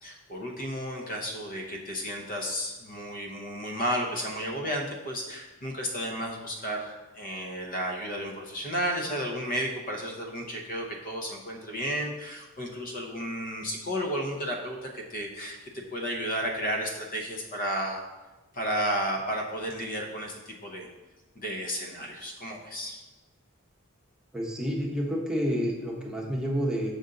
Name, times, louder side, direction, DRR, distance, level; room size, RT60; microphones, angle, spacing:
voice 1, 0.0-18.0 18.5-20.9 21.4-23.0, equal, 40° left, 2 dB, 0.8 m, -33 dB
voice 2, 24.3-26.9, equal, 5° right, -3 dB, 1.0 m, -29 dB
6.7 x 5.1 x 3.8 m, 1.1 s
head